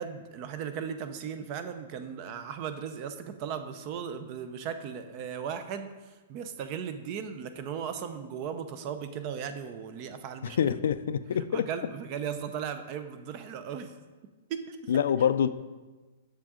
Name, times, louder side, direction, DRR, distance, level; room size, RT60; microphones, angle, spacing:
voice 1, 0.0-10.7 11.5-13.9 14.5-14.9, right 7 dB, 30° right, 0.4 m, -37 dB
voice 2, 10.4-11.7 14.9-15.5, left 8 dB, 70° left, 0.3 m, -26 dB
7.3 x 6.3 x 3.7 m
hypercardioid pair, 170°, 0 cm